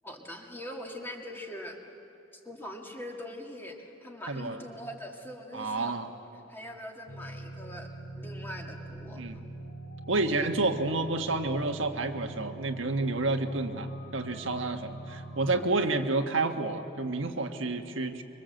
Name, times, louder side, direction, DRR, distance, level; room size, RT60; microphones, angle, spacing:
voice 1, 0.0-1.8 2.3-6.0 6.5-7.9 8.2-9.2, equal, 10° left, 1 dB, 2.2 m, -42 dB
voice 2, 4.3-4.6 5.5-6.1 9.2-9.3 10.1-13.9 14.1-18.2, right 2 dB, 90° right, 5 dB, 1.5 m, -29 dB
sound 1, 7.1-15.6, right 2 dB, 60° left, 3.9 m, -43 dB
24.5 x 24.5 x 7.8 m, 2.9 s
head